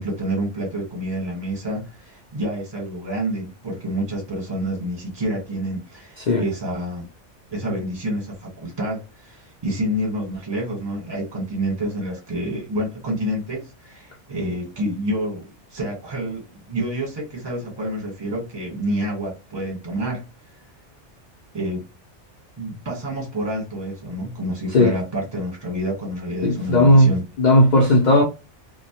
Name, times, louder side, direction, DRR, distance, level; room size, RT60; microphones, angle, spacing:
voice 1, 0.0-7.1 7.5-15.5 15.7-20.2 21.5-21.9 22.6-27.2, right 1 dB, 20° right, 1.0 m, -28 dB
voice 2, 26.4-27.1 27.4-28.2, left 1 dB, 55° left, 0.5 m, -15 dB
2.1 x 2.1 x 2.8 m
omnidirectional pair, 1.2 m